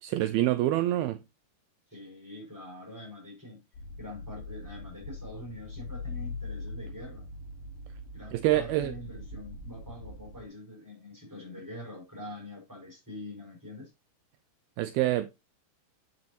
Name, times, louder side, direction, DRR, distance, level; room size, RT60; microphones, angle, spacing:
voice 1, 0.0-1.2 8.3-8.9 14.8-15.3, right 14 dB, 80° right, 2.3 m, -26 dB
voice 2, 1.9-3.6 4.0-7.3 8.1-13.9, left 1 dB, 5° right, 5.4 m, -44 dB
sound 1, 3.7-10.5, left 2 dB, 70° left, 4.1 m, -42 dB
9.5 x 8.7 x 2.9 m
omnidirectional pair, 4.9 m